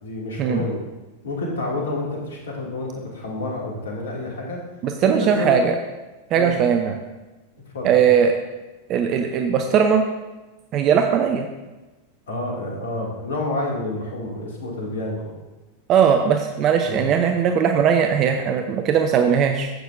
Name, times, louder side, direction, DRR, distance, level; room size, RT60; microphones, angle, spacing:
voice 1, 0.0-0.8 1.2-4.6 5.0-5.6 6.3-6.6 7.7-8.0 12.3-15.3 16.8-17.0, left 2 dB, 65° left, -2 dB, 2.1 m, -29 dB
voice 2, 4.8-5.7 6.3-7.0 7.8-8.3 8.9-10.0 10.7-11.5 15.9-19.7, right 7 dB, 35° right, 5 dB, 0.6 m, -19 dB
12.5 x 8.2 x 2.5 m, 1.1 s
figure-of-eight pair, 90°, 0 cm